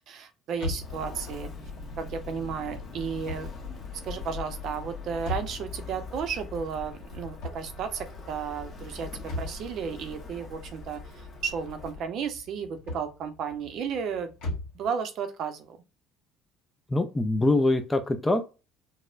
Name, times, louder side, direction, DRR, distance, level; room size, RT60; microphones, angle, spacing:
voice 1, 0.1-1.5 2.0-3.5 4.0-9.1 9.4-14.3 14.7-15.8, right 6 dB, 50° right, 0.6 m, -33 dB
sound 1, 0.5-14.9, left 2 dB, 70° left, 1.5 m, -41 dB
Walk footsteps, 0.7-12.0, left 4 dB, 25° left, 0.9 m, -41 dB
voice 2, 16.9-18.5, left 2 dB, 10° left, 0.3 m, -24 dB
4.1 x 2.1 x 2.4 m
cardioid pair, 160°, 0 cm